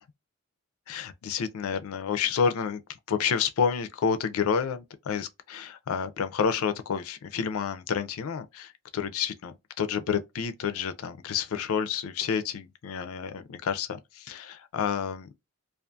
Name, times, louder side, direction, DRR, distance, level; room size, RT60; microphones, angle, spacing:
voice 1, 0.9-2.8 3.1-15.3, left 7 dB, 75° left, 0.4 m, -29 dB
2.4 x 2.3 x 2.4 m
head